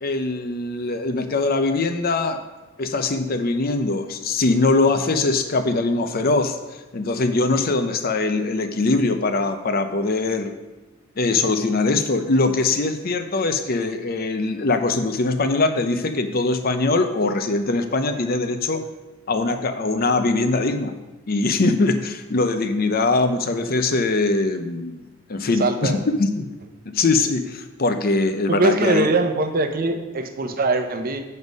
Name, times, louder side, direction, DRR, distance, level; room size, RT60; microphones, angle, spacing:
voice 1, 0.0-2.4 2.8-6.6 6.9-10.5 11.2-18.8 19.3-20.9 21.3-24.9 25.3-26.5 26.9-29.1, left 3 dB, 45° left, 8 dB, 0.6 m, -22 dB
voice 2, 25.5-26.0 28.5-31.2, right 2 dB, 45° right, 6 dB, 0.7 m, -22 dB
7.9 x 5.4 x 5.2 m, 1.1 s
head